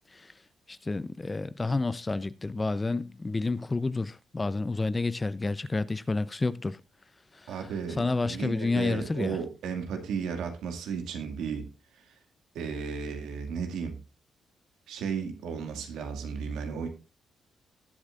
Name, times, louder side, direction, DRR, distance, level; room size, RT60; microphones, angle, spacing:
voice 1, 0.9-6.8 8.0-9.3, left 3 dB, 25° left, 0.7 m, -29 dB
voice 2, 7.5-11.7 12.5-14.0 14.9-16.9, right 6 dB, 85° right, 2.2 m, -34 dB
18.5 x 8.1 x 2.5 m
cardioid pair, 70°, 0 cm